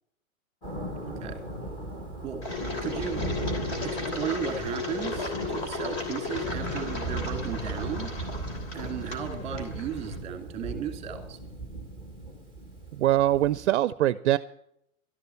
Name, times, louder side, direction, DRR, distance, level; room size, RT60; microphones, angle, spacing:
Thunder, 0.6-13.7, right 1 dB, 10° left, 1.9 m, -37 dB
voice 1, 1.1-1.4 2.2-2.4 2.8-3.3 3.8-8.1 8.7-11.4, right 8 dB, 15° right, 5 dB, 2.4 m, -35 dB
Engine, 2.4-10.2, left 3 dB, 30° left, 3.1 m, -35 dB
voice 2, 13.0-14.4, right 14 dB, 55° right, 15 dB, 0.6 m, -23 dB
12.5 x 11.0 x 7.0 m, 0.73 s
hypercardioid pair, 170°, 42 cm